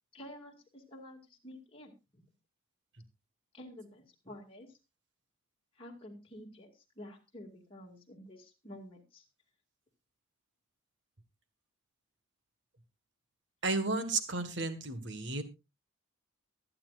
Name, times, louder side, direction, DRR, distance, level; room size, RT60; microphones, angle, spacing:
voice 1, 0.1-2.2 3.5-4.8 5.8-9.2, left 1 dB, 25° left, -1 dB, 2.2 m, -50 dB
voice 2, 13.6-15.4, right 3 dB, 55° right, 10 dB, 1.6 m, -33 dB
23.0 x 8.7 x 2.5 m, 0.27 s
head